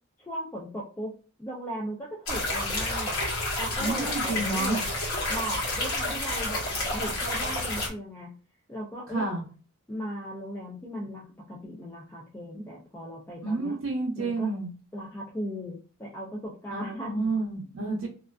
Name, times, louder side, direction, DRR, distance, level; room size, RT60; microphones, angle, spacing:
voice 1, 0.2-1.1 1.4-3.2 3.6-4.9 5.3-6.7 6.9-8.3 8.7-9.3 9.9-13.8 14.2-14.5 14.9-17.3, equal, 10° left, -4 dB, 0.4 m, -37 dB
sound 1, 2.3-7.9, left 1 dB, 80° left, 1.1 m, -30 dB
voice 2, 3.8-4.8 9.1-9.4 12.6-12.7 13.4-14.7 16.7-18.1, right 3 dB, 80° right, -3 dB, 0.6 m, -30 dB
2.4 x 2.3 x 2.2 m, 0.37 s
head